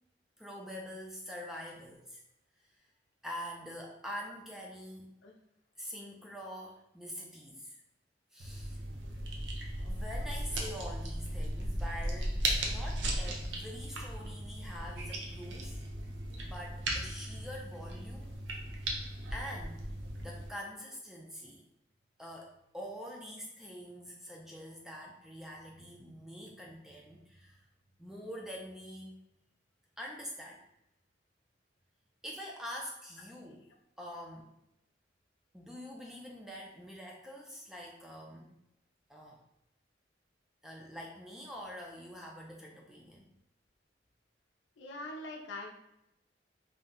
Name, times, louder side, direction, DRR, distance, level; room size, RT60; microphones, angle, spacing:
voice 1, 0.4-2.2 2.6-2.7 3.2-5.2 5.8-7.8 8.3-8.8 9.8-12.4 12.6-15.8 16.4-18.3 18.8-18.9 19.3-19.8 20.2-21.6 22.2-27.6 28.0-29.2 30.0-30.6 32.2-33.6 34.0-34.5 35.5-38.5 39.1-39.4 40.6-43.3, equal, ahead, -2 dB, 0.3 m, -45 dB
sound 1, 8.4-20.5, right 1 dB, 80° right, 0.5 m, -37 dB
voice 2, 44.8-45.7, left 2 dB, 85° left, 1 dB, 0.5 m, -44 dB
2.6 x 2.0 x 3.6 m, 0.84 s
head